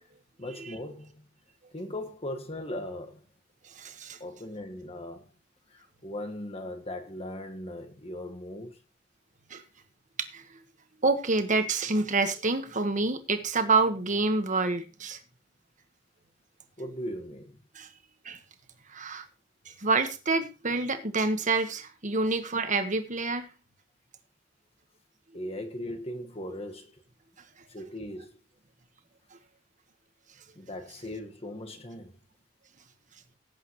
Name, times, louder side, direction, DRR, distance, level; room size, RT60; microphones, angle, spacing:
voice 1, 0.4-1.2 1.7-3.2 4.2-5.3 5.7-8.8 16.8-17.6 25.3-27.0 27.7-28.3 30.5-32.2, left 1 dB, 30° left, 1.6 m, -38 dB
voice 2, 3.8-4.2 9.5-9.6 10.2-10.4 11.0-15.2 17.7-17.9 18.2-18.4 18.9-19.3 19.8-23.5, right 3 dB, 45° right, 1.5 m, -27 dB
17.0 x 8.7 x 3.2 m
head